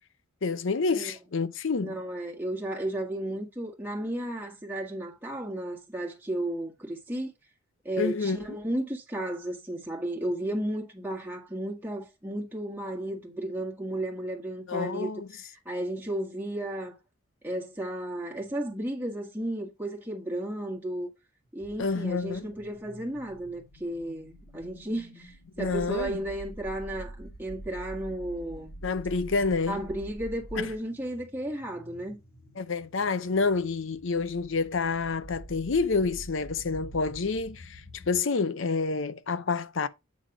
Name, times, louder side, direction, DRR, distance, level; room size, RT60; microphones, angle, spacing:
voice 1, 0.4-2.0 8.0-8.4 14.7-15.3 21.8-22.5 25.6-26.2 28.8-29.8 30.6-30.7 32.6-39.9, left 4 dB, 60° left, 0.6 m, -28 dB
voice 2, 1.8-7.3 7.8-17.0 17.4-21.1 21.5-28.7 29.7-32.2, right 1 dB, 10° right, 1.7 m, -34 dB
sound 1, 21.6-38.2, right 1 dB, 75° left, 2.8 m, -46 dB
8.4 x 3.5 x 4.8 m
head